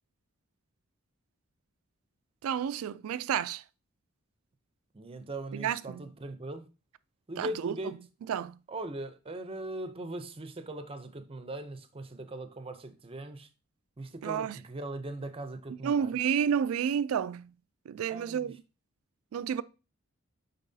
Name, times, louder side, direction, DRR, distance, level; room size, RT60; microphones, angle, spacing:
voice 1, 2.4-3.6 5.5-6.1 7.4-7.7 8.3-8.6 14.2-14.6 15.8-17.5 17.9-18.6 19.3-19.6, right 8 dB, 70° right, 0.3 m, -30 dB
voice 2, 4.9-6.7 7.3-8.0 8.7-13.5 14.0-16.2 18.1-18.5, right 1 dB, 25° right, 0.6 m, -40 dB
9.1 x 4.0 x 2.7 m
head